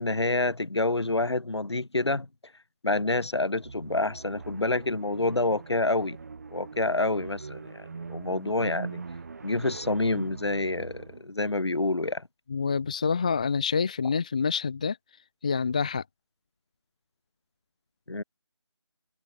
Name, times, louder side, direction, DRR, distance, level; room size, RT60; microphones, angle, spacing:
voice 1, 0.0-2.3 2.8-6.2 6.5-9.0 9.4-12.3 18.1-18.2, left 2 dB, 65° left, 3.3 m, -28 dB
sound 1, 3.6-11.3, right 4 dB, 35° right, 1.9 m, -41 dB
voice 2, 12.5-15.0 15.4-16.0, left 5 dB, 15° left, 0.7 m, -27 dB
figure-of-eight pair, 165°, 15 cm